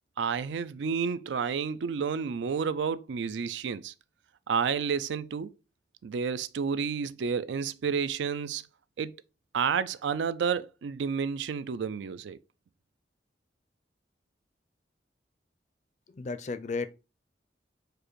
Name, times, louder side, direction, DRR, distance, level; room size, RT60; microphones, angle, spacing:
voice 1, 0.2-3.9 4.5-5.5 6.0-8.7 9.0-9.1 9.5-12.4, right 6 dB, 90° right, 0.4 m, -30 dB
voice 2, 16.1-16.9, left 4 dB, 40° left, 0.4 m, -33 dB
4.7 x 2.5 x 4.5 m
head